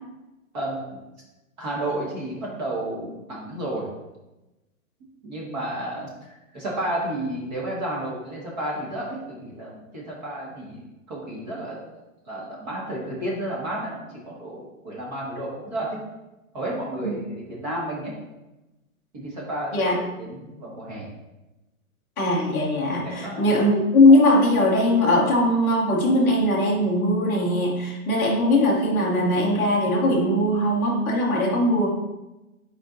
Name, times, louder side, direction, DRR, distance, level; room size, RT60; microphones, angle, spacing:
voice 1, 0.5-1.0 1.6-3.9 5.2-6.1 6.5-11.8 12.3-16.0 16.5-18.1 19.1-21.1 23.0-23.5, right 1 dB, 30° right, -4 dB, 1.7 m, -32 dB
voice 2, 22.2-31.9, left 1 dB, 5° left, -11 dB, 0.8 m, -20 dB
8.4 x 4.8 x 2.6 m, 1.0 s
hypercardioid pair, 175°, 41 cm